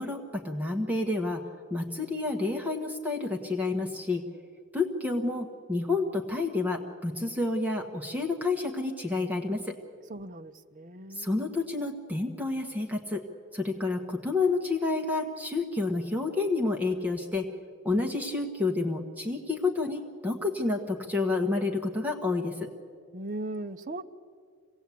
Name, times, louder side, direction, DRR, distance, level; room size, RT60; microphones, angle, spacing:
voice 1, 0.0-1.4 1.7-4.2 4.7-9.7 11.1-13.2 13.5-17.5 17.8-22.7, left 3 dB, 5° right, 2 dB, 1.2 m, -29 dB
voice 2, 10.1-11.3 14.4-14.6 23.1-24.0, right 2 dB, 35° right, 5 dB, 0.7 m, -38 dB
26.5 x 18.0 x 8.4 m, 2.1 s
head